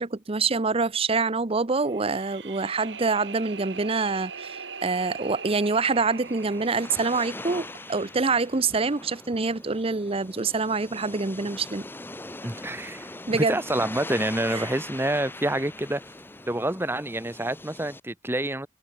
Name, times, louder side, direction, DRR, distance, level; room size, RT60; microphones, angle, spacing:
voice 1, 0.0-11.9 13.3-13.6 14.5-14.7, right 4 dB, 35° right, 0.8 m, -26 dB
sound 1, 1.8-8.9, right 6 dB, 80° right, 4.4 m, -41 dB
sound 2, 5.7-18.0, left 2 dB, 10° left, 1.1 m, -41 dB
voice 2, 12.4-16.0 16.5-18.7, right 1 dB, 15° right, 1.6 m, -28 dB
head